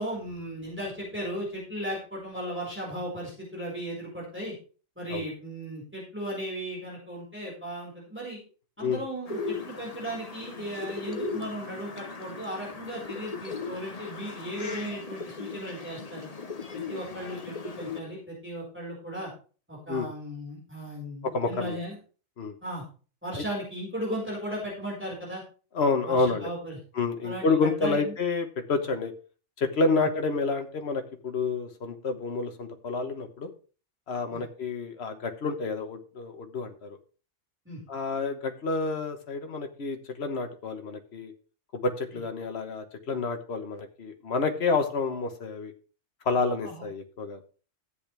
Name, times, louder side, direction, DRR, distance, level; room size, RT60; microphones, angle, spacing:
voice 1, 0.0-4.5 5.0-8.4 8.8-16.3 16.7-19.3 19.7-22.0 22.6-22.8 23.2-25.4 26.1-26.8 27.2-28.1 30.0-30.1 34.3-34.4 37.6-37.8 42.1-42.2 46.6-46.8, equal, 10° right, -4 dB, 4.9 m, -36 dB
sound 1, 9.3-18.0, left 4 dB, 35° left, 1.0 m, -38 dB
voice 2, 21.2-21.8 22.4-22.5 23.3-23.4 25.7-26.5 26.9-29.1 29.6-33.5 34.1-37.0 37.9-41.3 41.7-45.7 46.2-47.4, left 4 dB, 60° left, 6 dB, 1.5 m, -29 dB
13.0 x 8.5 x 3.4 m, 0.38 s
omnidirectional pair, 1.3 m